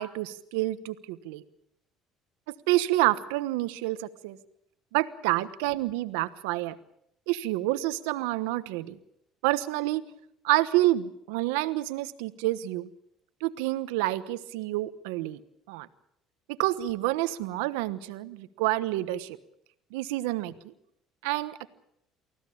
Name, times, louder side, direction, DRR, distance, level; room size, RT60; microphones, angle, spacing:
voice 1, 0.0-1.4 2.7-4.4 4.9-6.8 7.3-9.0 9.4-10.0 10.4-12.9 13.4-15.4 15.7-15.9 16.5-19.4 19.9-20.5 21.2-21.7, right 17 dB, 90° right, 14 dB, 1.2 m, -28 dB
24.5 x 16.0 x 8.7 m, 0.76 s
supercardioid pair, 85°, 0 cm